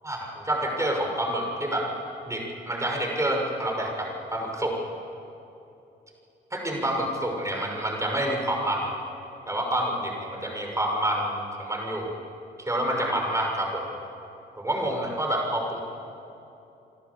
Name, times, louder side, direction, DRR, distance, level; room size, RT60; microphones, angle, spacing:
voice 1, 0.0-1.9 2.3-4.8 6.5-8.9 9.5-12.1 12.6-13.8 14.6-15.8, right 1 dB, 15° right, 1 dB, 6.2 m, -28 dB
26.5 x 12.5 x 8.6 m, 2.8 s
supercardioid pair, 65°, 19 cm